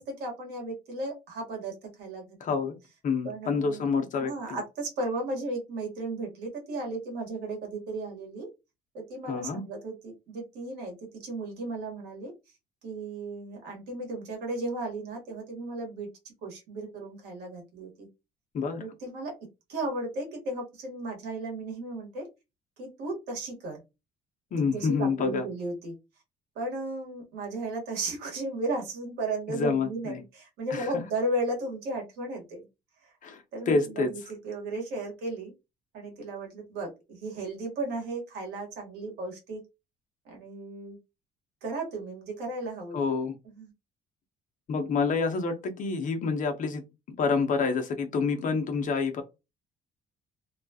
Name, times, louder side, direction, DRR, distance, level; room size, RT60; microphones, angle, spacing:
voice 1, 0.0-2.4 3.2-3.8 4.2-8.5 8.9-12.3 12.8-16.1 16.4-18.1 18.8-19.3 19.7-22.3 22.8-23.8 24.7-26.0 26.5-32.6 33.0-33.1 33.5-35.5 35.9-39.6 40.2-41.0 41.6-43.0 43.5-43.7, right 2 dB, 90° right, 1.4 m, -35 dB
voice 2, 2.4-2.7 3.0-4.6 9.3-9.6 18.5-18.8 24.5-25.4 29.5-30.2 30.7-30.9 33.2-34.1 42.9-43.3 44.7-46.8 47.2-49.2, left 4 dB, 50° left, 0.8 m, -28 dB
2.9 x 2.3 x 2.7 m
cardioid pair, 110°, 17 cm